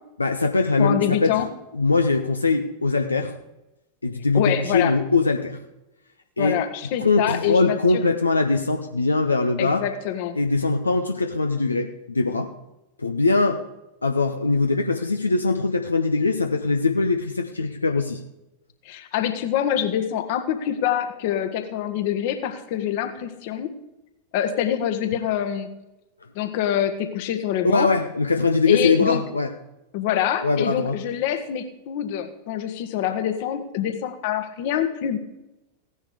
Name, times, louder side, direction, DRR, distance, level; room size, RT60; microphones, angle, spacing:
voice 1, 0.2-1.3 1.7-3.3 4.0-5.6 6.4-6.6 7.0-9.8 10.4-12.5 13.0-13.6 14.0-18.2 27.6-29.5 30.4-30.9, left 3 dB, 80° left, 6 dB, 0.9 m, -22 dB
voice 2, 0.8-1.5 4.3-4.9 6.4-8.0 9.6-10.3 18.8-23.7 24.3-25.7 26.3-27.9 28.7-29.2 29.9-35.2, left 10 dB, 50° left, 8 dB, 1.5 m, -25 dB
16.5 x 10.0 x 4.9 m, 0.94 s
figure-of-eight pair, 90°, 0 cm